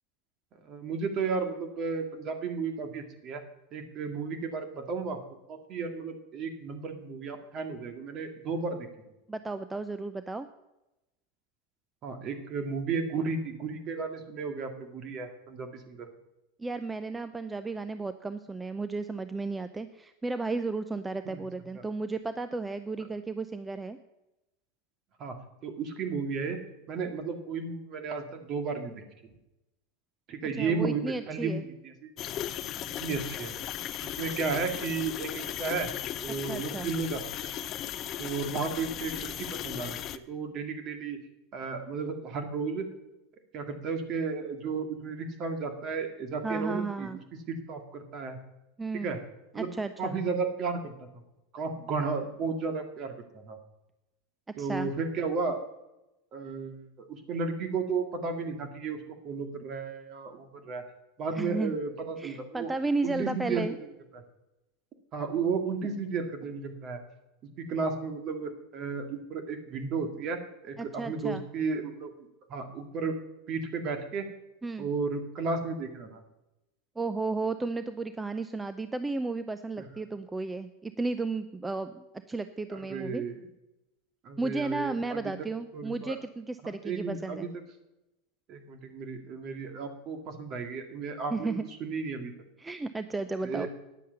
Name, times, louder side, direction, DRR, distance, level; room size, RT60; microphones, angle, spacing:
voice 1, 0.6-3.4 3.7-5.2 5.5-8.9 12.0-16.1 21.3-21.4 21.7-21.8 25.2-25.4 25.6-26.6 26.9-29.0 30.3-32.1 33.0-33.6 34.0-35.9 36.2-37.5 38.2-41.2 41.5-42.9 43.5-48.4 49.0-49.2 49.5-49.7 50.0-50.9 51.5-53.6 54.6-55.6 56.3-59.0 59.2-60.8 61.2-62.7 63.0-63.9 64.1-64.2 65.1-67.0 67.6-70.4 70.6-72.1 72.5-73.1 73.5-74.3 74.8-76.2 79.8-79.9 82.7-83.4 84.2-85.3 85.7-86.2 86.6-87.5 88.5-92.3 93.4-93.7, right 4 dB, 45° right, 5 dB, 2.0 m, -33 dB
voice 2, 9.3-10.5 16.6-24.0 30.6-31.6 36.5-36.9 46.4-47.2 48.8-49.1 49.6-50.2 54.6-54.9 61.3-61.7 62.2-63.8 70.8-71.4 74.6-74.9 77.0-83.2 84.4-87.5 91.3-91.6 92.6-93.7, right 3 dB, 15° right, 11 dB, 0.5 m, -33 dB
sound 1, 32.2-40.2, left 11 dB, 40° left, 0.6 m, -37 dB
10.0 x 7.4 x 6.8 m, 0.94 s
hypercardioid pair, 95°, 0 cm